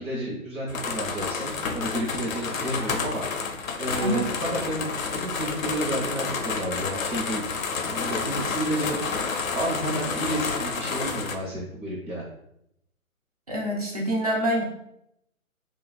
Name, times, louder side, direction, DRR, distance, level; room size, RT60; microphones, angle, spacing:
voice 1, 0.0-3.2 3.8-7.4 7.8-9.3 9.5-12.2, right 1 dB, 70° right, -5 dB, 0.9 m, -31 dB
sound 1, 0.7-11.4, left 5 dB, 70° left, 0.5 m, -30 dB
voice 2, 4.0-4.3 13.5-14.6, right 1 dB, 30° right, -1 dB, 0.4 m, -26 dB
2.8 x 2.3 x 2.2 m, 0.77 s
figure-of-eight pair, 135°, 41 cm